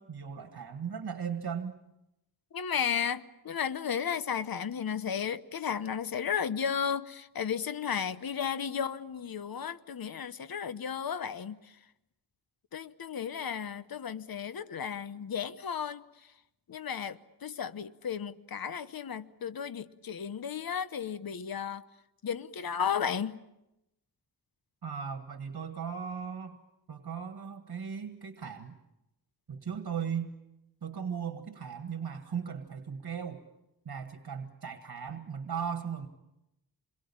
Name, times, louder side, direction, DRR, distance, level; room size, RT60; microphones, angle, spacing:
voice 1, 0.0-1.8 24.8-26.6 26.9-28.8 29.5-30.3 30.8-33.4 33.8-36.1, right 7 dB, 70° right, 1.8 m, -37 dB
voice 2, 2.5-11.6 12.7-16.0 16.7-21.8 22.2-23.4, left 7 dB, 65° left, 0.9 m, -34 dB
28.0 x 22.5 x 8.6 m
wide cardioid pair, 115°, 39 cm